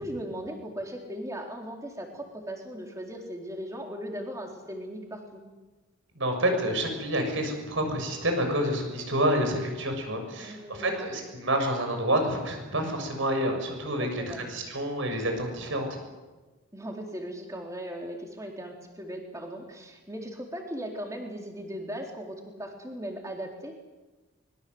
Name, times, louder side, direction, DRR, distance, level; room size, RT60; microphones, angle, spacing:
voice 1, 0.0-5.4 10.3-11.1 14.0-14.4 16.7-23.7, equal, 15° right, 2 dB, 4.0 m, -38 dB
voice 2, 6.1-16.0, right 1 dB, 65° right, 4 dB, 6.7 m, -28 dB
24.5 x 22.0 x 8.0 m, 1.2 s
head